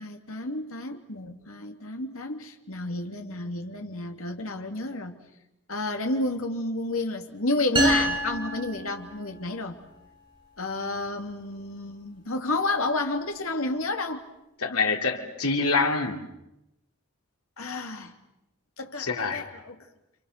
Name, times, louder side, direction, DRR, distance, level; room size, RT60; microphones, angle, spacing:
voice 1, 0.0-5.2 5.7-9.8 10.6-14.2 17.6-18.1 18.8-19.8, left 2 dB, 65° left, 2.8 m, -31 dB
sound 1, 7.8-9.5, right 2 dB, 20° right, 7.2 m, -26 dB
voice 2, 14.6-16.2 19.0-19.4, left 4 dB, 85° left, 3.1 m, -25 dB
29.0 x 27.5 x 6.7 m
head